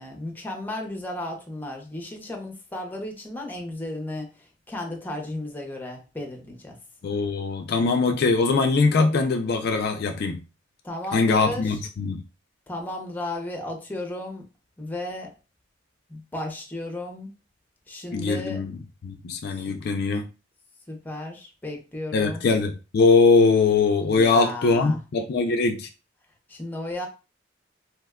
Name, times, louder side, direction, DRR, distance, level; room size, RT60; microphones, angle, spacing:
voice 1, 0.0-6.8 10.8-11.7 12.7-14.4 14.8-15.3 16.1-17.3 17.9-18.6 20.9-22.5 24.1-25.0 26.5-27.1, left 1 dB, 10° left, 0.6 m, -34 dB
voice 2, 7.0-10.4 11.1-12.2 18.1-18.8 19.0-20.3 22.1-25.9, left 4 dB, 55° left, 0.3 m, -21 dB
2.8 x 2.2 x 3.5 m
head